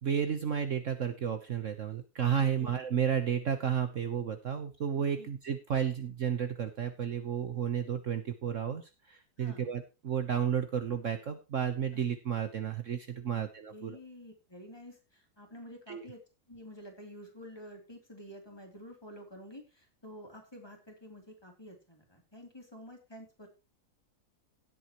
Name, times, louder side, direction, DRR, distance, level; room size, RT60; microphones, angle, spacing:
voice 1, 0.0-14.0 15.9-16.0, right 8 dB, 55° right, 8 dB, 1.3 m, -32 dB
voice 2, 2.4-2.7 4.9-5.3 9.4-9.6 11.9-12.0 13.3-16.2 16.5-23.5, equal, 15° left, 1 dB, 3.3 m, -50 dB
17.0 x 8.3 x 3.0 m, 0.29 s
omnidirectional pair, 1.7 m